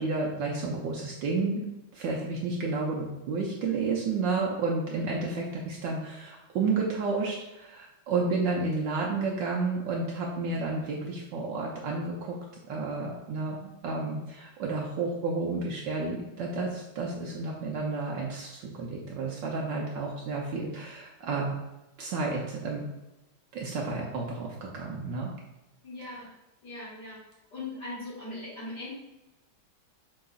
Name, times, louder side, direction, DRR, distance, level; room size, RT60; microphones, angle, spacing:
voice 1, 0.0-1.7 1.9-12.4 12.7-21.6 22.0-22.8 23.5-25.3, right 3 dB, 70° right, -2 dB, 1.2 m, -31 dB
voice 2, 25.8-26.3 26.6-27.2 27.5-28.9, left 2 dB, 55° left, -11 dB, 2.1 m, -39 dB
7.4 x 2.9 x 2.3 m, 0.97 s
omnidirectional pair, 2.3 m